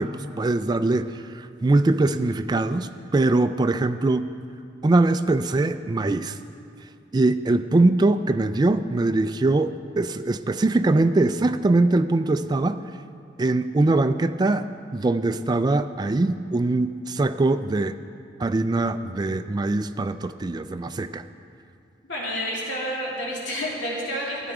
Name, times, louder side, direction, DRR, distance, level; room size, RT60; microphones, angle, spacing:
voice 1, 0.0-4.3 4.8-6.4 7.1-12.8 13.4-14.7 14.9-18.0 18.4-21.2, right 2 dB, 25° right, 10 dB, 0.3 m, -22 dB
voice 2, 22.1-24.5, equal, 80° left, -4 dB, 2.6 m, -29 dB
12.0 x 9.1 x 4.8 m, 2.5 s
head